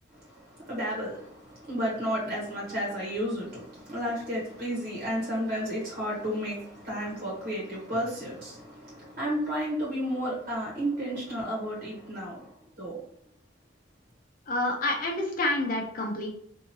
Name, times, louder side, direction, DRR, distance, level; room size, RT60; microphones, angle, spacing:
voice 1, 0.1-13.0, equal, 55° right, 1.2 m, -32 dB
voice 2, 14.5-16.3, left 2 dB, 50° left, 0.6 m, -28 dB
4.2 x 2.6 x 2.9 m
head